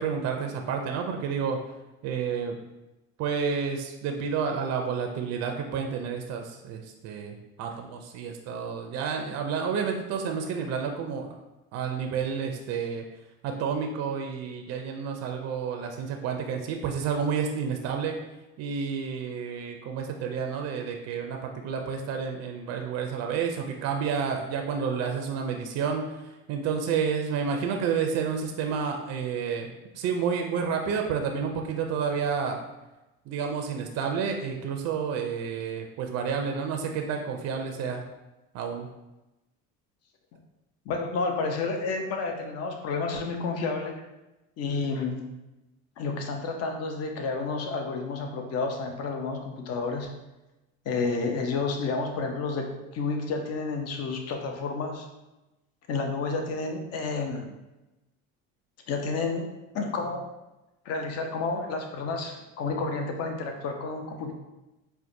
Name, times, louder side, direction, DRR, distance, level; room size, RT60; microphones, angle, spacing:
voice 1, 0.0-1.6 2.0-2.6 3.2-11.3 11.7-13.0 13.4-18.1 18.6-29.7 29.9-32.6 33.3-38.0 38.5-38.9, right 6 dB, 50° right, 4 dB, 0.5 m, -30 dB
voice 2, 40.9-44.0 44.6-45.2 46.0-50.1 50.9-55.1 55.9-57.5 58.9-59.4 59.7-60.2 60.8-64.3, left 4 dB, 50° left, 3 dB, 0.7 m, -30 dB
4.4 x 2.2 x 2.6 m, 1.0 s
supercardioid pair, 100°, 32 cm